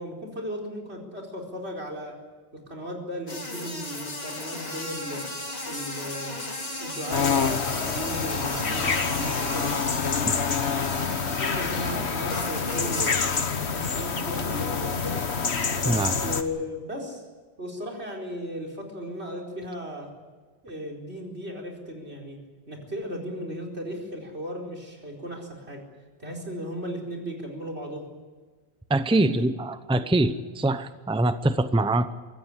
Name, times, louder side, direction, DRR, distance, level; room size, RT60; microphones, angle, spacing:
voice 1, 0.0-2.2 2.5-5.2 5.7-6.4 6.8-9.7 11.2-13.1 13.5-15.2 15.7-17.2 17.6-20.1 20.6-22.4 22.7-25.8 26.2-28.0 29.1-29.5, equal, 80° right, 3 dB, 4.8 m, -36 dB
sound 1, 3.3-12.0 12.3-13.4, left 2 dB, 70° left, 3.3 m, -35 dB
sound 2, 7.1-16.4, left 5 dB, 85° left, 1.6 m, -27 dB
voice 2, 15.9-16.2 28.9-32.1, right 2 dB, 5° right, 11 dB, 0.7 m, -24 dB
25.0 x 14.5 x 9.9 m, 1.4 s
omnidirectional pair, 1.1 m